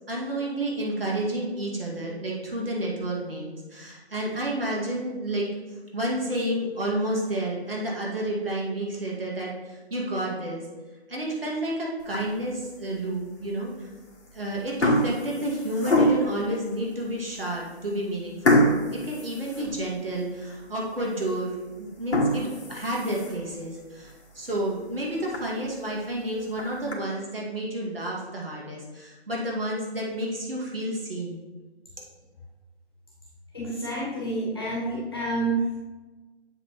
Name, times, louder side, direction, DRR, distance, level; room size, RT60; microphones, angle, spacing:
voice 1, 0.1-5.5 5.9-10.6 11.1-13.9 14.3-31.4, right 1 dB, 60° right, -3 dB, 2.2 m, -30 dB
sound 1, 12.0-12.5 13.1-13.2 14.1-14.3 14.6-16.5 17.1-17.2 17.5-17.6 18.4-20.2 20.6-20.7 21.2-21.3 21.9-23.5 24.0-24.1 24.5-24.6 24.9-25.0 25.3-25.4 26.3-26.9, left 1 dB, 85° left, 1.5 m, -25 dB
voice 2, 33.5-35.7, right 2 dB, 20° left, -7 dB, 1.6 m, -28 dB
8.0 x 5.8 x 3.1 m, 1.2 s
figure-of-eight pair, 180°, 33 cm